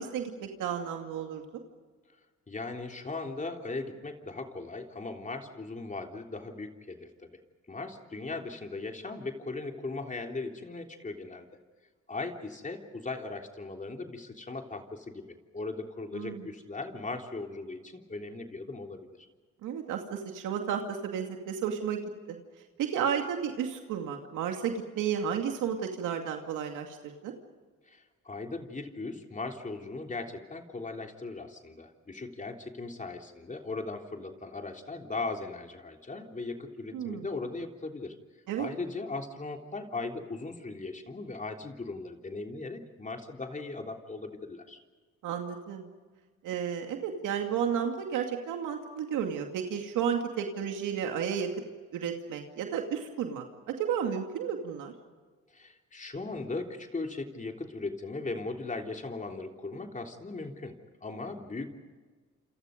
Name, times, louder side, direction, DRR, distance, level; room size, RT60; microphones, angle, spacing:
voice 1, 0.0-1.6 16.1-16.5 19.6-22.0 22.3-22.4 22.8-27.3 36.9-37.3 38.5-38.7 45.2-45.9 46.4-51.5 51.9-53.4 53.8-54.9, right 8 dB, 90° right, 3 dB, 2.4 m, -32 dB
voice 2, 2.5-7.1 7.7-11.5 12.1-19.1 27.9-38.1 38.6-44.8 55.5-60.7 61.0-61.7, left 3 dB, 25° left, 3 dB, 3.4 m, -38 dB
28.5 x 27.5 x 5.2 m, 1.4 s
cardioid pair, 90°, 30 cm